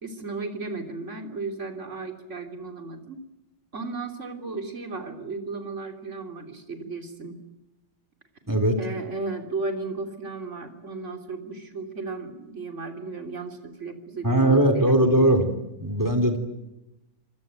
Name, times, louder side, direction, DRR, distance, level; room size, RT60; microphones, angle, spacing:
voice 1, 0.0-3.2 3.7-7.4 8.8-15.0, right 3 dB, 35° right, 6 dB, 3.4 m, -35 dB
voice 2, 8.5-8.8 14.2-16.4, right 1 dB, 10° right, 6 dB, 3.3 m, -20 dB
26.5 x 23.0 x 9.2 m, 0.97 s
omnidirectional pair, 2.2 m